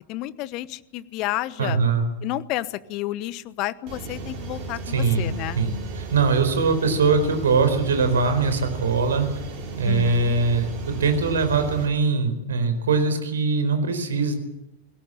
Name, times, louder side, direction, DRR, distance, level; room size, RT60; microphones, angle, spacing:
voice 1, 0.1-1.8 2.2-5.6 9.8-10.3, left 16 dB, 40° left, 17 dB, 1.0 m, -31 dB
voice 2, 1.6-2.1 4.9-9.3 9.8-14.3, right 4 dB, 65° right, 9 dB, 4.3 m, -22 dB
sound 1, 3.9-11.9, right 4 dB, 45° right, 5.4 m, -35 dB
22.0 x 17.5 x 8.8 m, 0.90 s
figure-of-eight pair, 90°, 0 cm